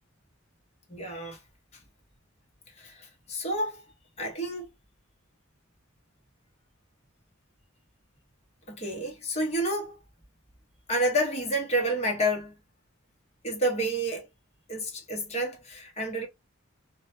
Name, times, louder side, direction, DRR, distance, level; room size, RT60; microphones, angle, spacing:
voice 1, 0.9-1.4 2.8-3.8 4.2-4.7 8.7-10.0 10.9-12.5 13.4-14.3 14.7-16.3, right 1 dB, 30° left, 0.8 m, -29 dB
2.3 x 2.1 x 2.8 m
head